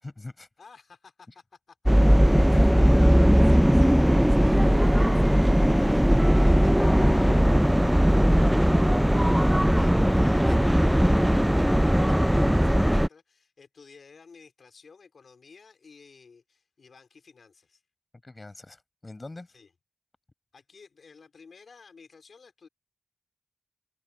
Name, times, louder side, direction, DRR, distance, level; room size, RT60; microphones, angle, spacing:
voice 1, 0.0-0.5 2.1-3.3 3.8-3.9 6.4-7.9 8.6-8.7 18.2-19.5, left 2 dB, 30° left, 6.0 m, -41 dB
voice 2, 0.6-2.1 2.4-6.7 7.3-7.4 9.3-17.8 19.5-19.7 20.5-22.7, left 5 dB, 80° left, 4.1 m, -53 dB
sound 1, 1.9-13.1, equal, 5° right, 0.3 m, -19 dB
open air
wide cardioid pair, 75°, 0 cm